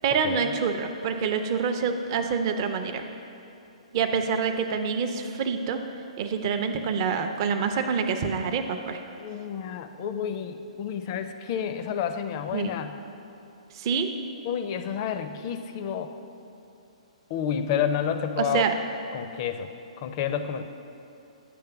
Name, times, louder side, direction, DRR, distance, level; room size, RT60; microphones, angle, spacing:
voice 1, 0.0-3.0 3.9-5.8 6.2-9.0 12.5-12.7 13.7-14.1 18.4-18.7, right 6 dB, 40° right, 6 dB, 0.5 m, -26 dB
voice 2, 9.2-13.0 14.4-16.2 17.3-18.7 19.1-19.7 20.0-20.6, left 8 dB, 35° left, 8 dB, 0.4 m, -30 dB
9.3 x 3.3 x 5.7 m, 2.7 s
figure-of-eight pair, 120°, 4 cm